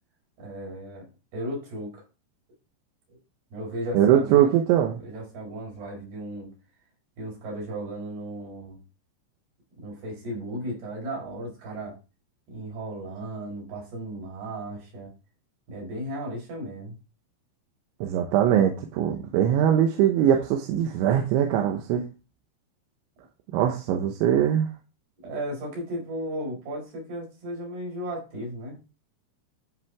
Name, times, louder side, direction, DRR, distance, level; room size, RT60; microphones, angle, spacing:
voice 1, 0.4-1.1 1.3-2.0 3.5-4.5 4.9-6.5 7.2-8.8 9.8-12.0 12.5-15.1 15.7-17.0 25.2-28.8, right 1 dB, 60° right, 6.7 m, -35 dB
voice 2, 3.9-5.0 18.0-22.1 23.5-24.7, right 10 dB, 85° right, 3.4 m, -21 dB
13.0 x 5.6 x 3.5 m
omnidirectional pair, 5.2 m